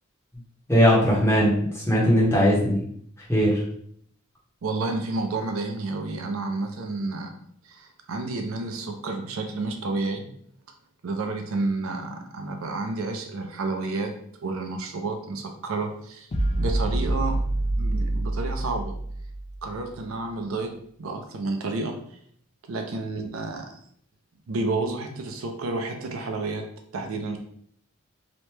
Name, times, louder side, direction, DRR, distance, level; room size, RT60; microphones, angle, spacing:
voice 1, 0.7-2.8 3.3-3.6, equal, 10° left, -6 dB, 0.9 m, -19 dB
voice 2, 4.6-7.3 7.6-10.3 11.0-14.1 14.4-16.3 16.6-17.4 17.8-19.0 19.6-20.7 21.0-21.9 22.7-23.6 24.5-26.6 26.9-27.4, right 3 dB, 75° right, 4 dB, 0.5 m, -30 dB
sound 1, 16.3-19.7, right 1 dB, 35° left, 0.4 m, -26 dB
2.9 x 2.1 x 3.2 m, 0.64 s
head